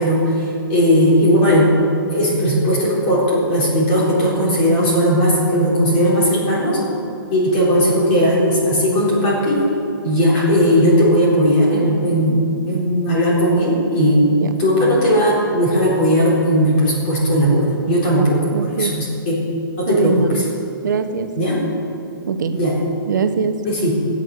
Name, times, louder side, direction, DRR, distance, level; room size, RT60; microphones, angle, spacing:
voice 1, 0.0-1.8 2.1-6.8 7.3-9.6 10.0-12.4 12.7-14.2 14.6-19.4 19.7-20.4 21.4-21.6 22.5-22.7 23.7-23.9, equal, 25° left, -5 dB, 3.9 m, -17 dB
voice 2, 18.2-19.0 19.9-20.5 20.8-21.4 22.3-22.6 23.1-23.6, right 5 dB, 50° right, 9 dB, 0.9 m, -22 dB
17.0 x 8.7 x 6.6 m, 2.8 s
hypercardioid pair, 180°, 12 cm